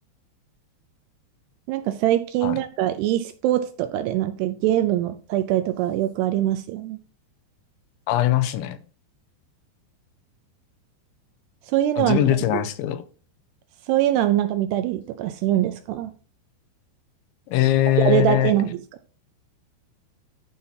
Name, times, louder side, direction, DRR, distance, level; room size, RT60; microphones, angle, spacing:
voice 1, 1.7-7.0 11.7-12.6 13.9-16.1 18.0-18.8, right 12 dB, 85° right, 2.4 m, -23 dB
voice 2, 8.1-8.8 12.0-13.0 17.5-18.5, left 13 dB, 85° left, 3.1 m, -21 dB
11.0 x 4.2 x 5.6 m
omnidirectional pair, 5.2 m